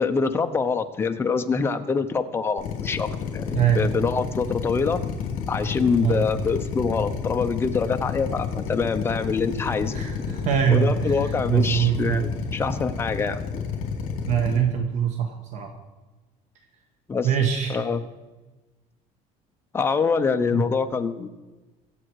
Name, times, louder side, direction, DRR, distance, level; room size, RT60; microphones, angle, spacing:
voice 1, 0.0-5.0 5.5-10.0 10.7-13.4 17.1-17.3 17.7-18.0 19.7-21.3, left 5 dB, 15° left, 6 dB, 0.8 m, -25 dB
Drill, 2.6-14.6, left 6 dB, 55° left, 3.3 m, -30 dB
voice 2, 3.5-3.9 6.0-6.3 9.9-12.3 14.2-15.7 17.2-17.8 20.5-20.6, right 8 dB, 50° right, 5 dB, 1.3 m, -23 dB
23.0 x 7.8 x 4.7 m, 1.2 s
cardioid pair, 170°, 16 cm